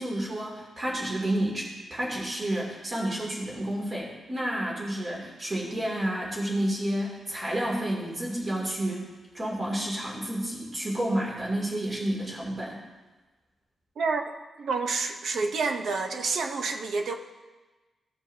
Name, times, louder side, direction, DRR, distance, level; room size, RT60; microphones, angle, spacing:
voice 1, 0.0-9.1 9.3-12.8, right 1 dB, 30° right, -3 dB, 2.7 m, -30 dB
voice 2, 14.6-17.2, right 4 dB, 60° right, 5 dB, 0.9 m, -28 dB
16.0 x 7.2 x 2.8 m, 1.2 s
wide cardioid pair, 145°, 0 cm